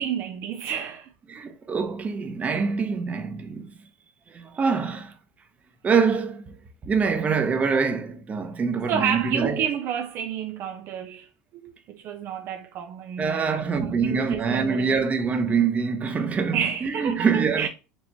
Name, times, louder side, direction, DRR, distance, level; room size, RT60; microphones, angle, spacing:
voice 1, 0.0-1.1 8.9-15.1 16.5-17.7, right 8 dB, 50° right, 0.5 m, -30 dB
voice 2, 1.3-3.8 4.3-5.1 5.8-6.6 6.8-9.7 13.2-17.7, right 5 dB, 25° right, 0.8 m, -25 dB
4.5 x 2.8 x 2.8 m
supercardioid pair, 100°, 5 cm